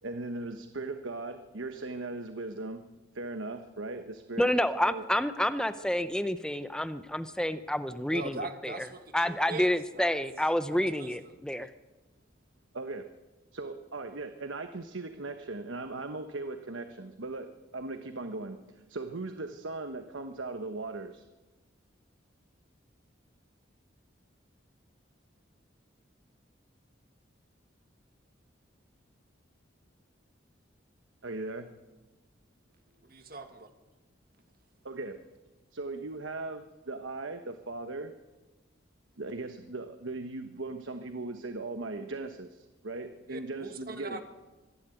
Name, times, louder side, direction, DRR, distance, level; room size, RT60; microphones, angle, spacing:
voice 1, 0.0-2.8 3.1-5.0 12.7-13.1 13.5-21.2 31.2-31.7 34.8-35.2 35.7-38.1 39.2-44.2, right 2 dB, 80° right, 8 dB, 1.1 m, -38 dB
voice 2, 4.4-8.9 9.1-11.7, left 1 dB, 5° left, 11 dB, 0.6 m, -29 dB
voice 3, 8.1-10.1 10.7-11.3 33.0-33.7 43.3-44.2, right 2 dB, 50° right, 7 dB, 1.8 m, -41 dB
24.5 x 11.5 x 9.2 m, 1.2 s
head